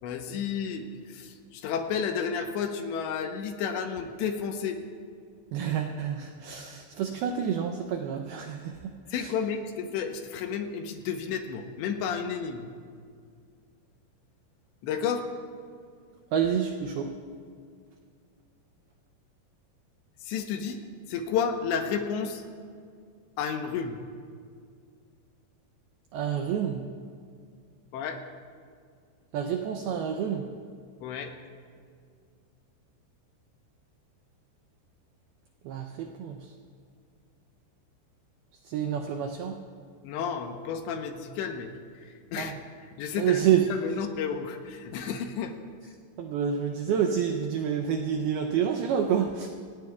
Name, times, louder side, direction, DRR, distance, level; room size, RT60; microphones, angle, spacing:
voice 1, 0.0-4.8 9.1-12.7 14.8-15.3 20.2-20.8 21.1-22.4 23.4-24.0 27.9-28.2 31.0-31.3 40.0-41.7 42.0-42.5 42.9-43.4 43.7-45.5, left 7 dB, 80° left, 5 dB, 3.0 m, -31 dB
voice 2, 5.5-8.9 9.2-9.3 16.3-17.1 26.1-26.8 29.3-30.5 35.7-36.5 38.7-39.6 42.4-42.6 43.2-43.7 46.2-49.5, right 8 dB, 85° right, 4 dB, 2.2 m, -28 dB
26.5 x 18.0 x 2.4 m, 2.2 s
omnidirectional pair, 5.4 m